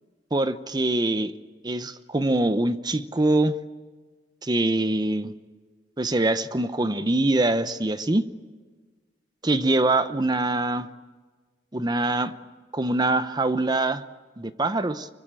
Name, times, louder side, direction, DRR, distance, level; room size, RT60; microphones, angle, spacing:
voice 1, 0.3-1.3 1.6-3.5 4.4-5.3 6.0-8.3 9.4-10.9 11.7-12.3 12.7-14.0 14.4-15.1, right 2 dB, 20° right, 12 dB, 0.8 m, -24 dB
25.0 x 24.0 x 8.8 m, 1.4 s
head